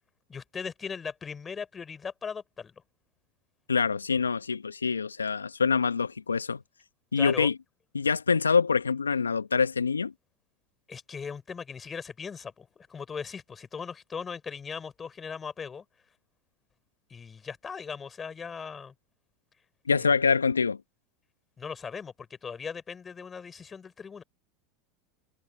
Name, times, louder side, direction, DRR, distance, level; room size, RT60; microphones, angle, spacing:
voice 1, 0.3-2.7 7.2-7.5 10.9-15.8 17.1-18.9 19.9-20.1 21.6-24.2, left 6 dB, 25° left, 6.7 m, -39 dB
voice 2, 3.7-6.6 7.1-7.5 7.9-10.1 19.9-20.8, left 5 dB, 90° left, 1.5 m, -25 dB
hypercardioid pair, 85°, 0 cm